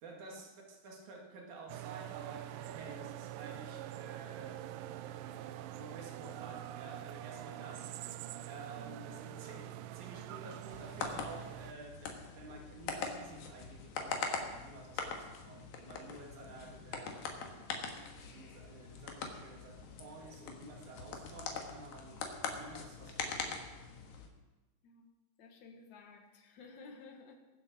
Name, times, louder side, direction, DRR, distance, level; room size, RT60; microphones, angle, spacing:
voice 1, 0.0-4.8 5.1-7.9 8.4-18.0 18.3-22.3 22.6-23.5, right 3 dB, 60° right, 1 dB, 3.3 m, -51 dB
sound 1, 1.7-11.7, right 13 dB, 80° right, 2.3 m, -45 dB
sound 2, 10.7-24.3, left 5 dB, 90° left, 3.3 m, -42 dB
voice 2, 25.4-27.4, left 4 dB, 60° left, 3 dB, 2.9 m, -54 dB
21.5 x 7.7 x 6.0 m, 1.1 s
omnidirectional pair, 4.0 m